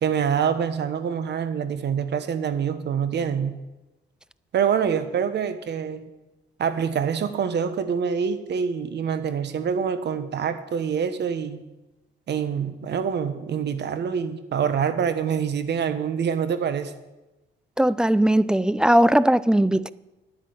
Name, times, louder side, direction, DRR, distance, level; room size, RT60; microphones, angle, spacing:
voice 1, 0.0-3.5 4.5-6.0 6.6-11.7 12.3-16.9, right 7 dB, 60° right, 1.2 m, -25 dB
voice 2, 17.8-19.9, right 1 dB, 5° right, 0.4 m, -19 dB
10.0 x 9.8 x 7.9 m
cardioid pair, 90°, 20 cm